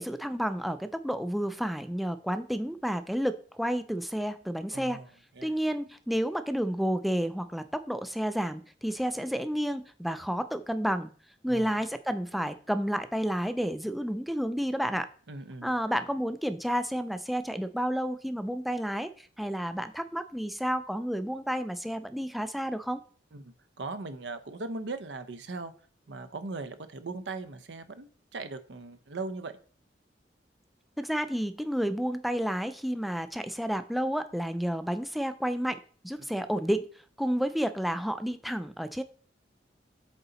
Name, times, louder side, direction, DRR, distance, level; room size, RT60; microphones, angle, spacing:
voice 1, 0.0-5.0 5.4-11.1 11.4-15.1 15.6-23.0 31.0-36.8 37.2-39.0, equal, ahead, 10 dB, 0.3 m, -31 dB
voice 2, 4.7-5.1 5.4-5.5 11.5-11.8 15.3-15.7 23.3-25.7 26.1-29.5 36.2-36.3, right 3 dB, 80° right, 10 dB, 0.7 m, -39 dB
8.0 x 3.9 x 4.0 m, 0.43 s
head